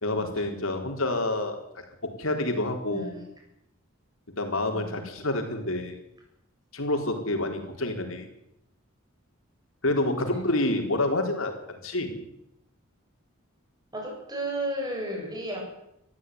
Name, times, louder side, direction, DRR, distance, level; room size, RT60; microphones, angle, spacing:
voice 1, 0.0-1.6 2.0-3.1 4.4-6.0 6.7-8.3 9.8-12.1, left 2 dB, 70° left, 4 dB, 4.3 m, -28 dB
voice 2, 2.9-3.2 4.7-5.1 10.3-10.5 13.9-15.6, right 1 dB, 20° right, 0 dB, 7.6 m, -33 dB
21.5 x 14.0 x 9.6 m, 0.81 s
head